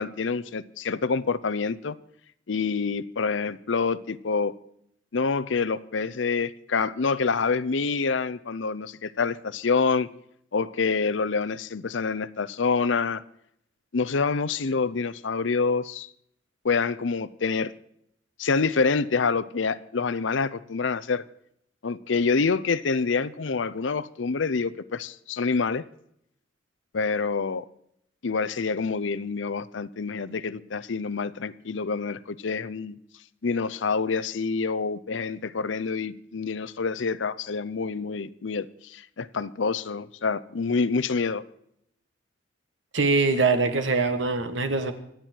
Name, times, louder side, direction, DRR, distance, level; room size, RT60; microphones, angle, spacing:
voice 1, 0.0-2.0 2.5-4.5 5.1-10.1 10.5-13.2 13.9-16.1 16.6-17.7 18.4-21.2 21.8-25.9 26.9-27.6 28.2-33.0 33.4-41.4, left 4 dB, 75° left, 0.6 m, -27 dB
voice 2, 42.9-44.9, right 3 dB, 75° right, 1.7 m, -23 dB
25.5 x 9.1 x 4.5 m
head